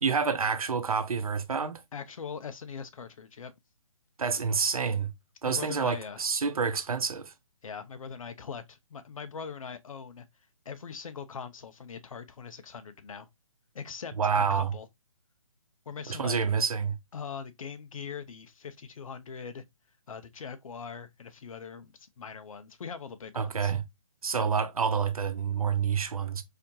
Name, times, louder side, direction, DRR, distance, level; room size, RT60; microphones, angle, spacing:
voice 1, 0.0-1.8 4.2-5.1 5.4-7.3 14.2-14.7 16.1-17.0 23.4-23.8 24.2-26.4, right 6 dB, 85° right, 0.8 m, -28 dB
voice 2, 1.9-3.5 5.4-6.2 7.6-10.3 10.6-13.3 13.7-14.9 15.9-16.4 17.1-19.6 20.1-23.7, left 6 dB, 70° left, 0.7 m, -41 dB
4.1 x 2.9 x 2.7 m
hypercardioid pair, 160°, 18 cm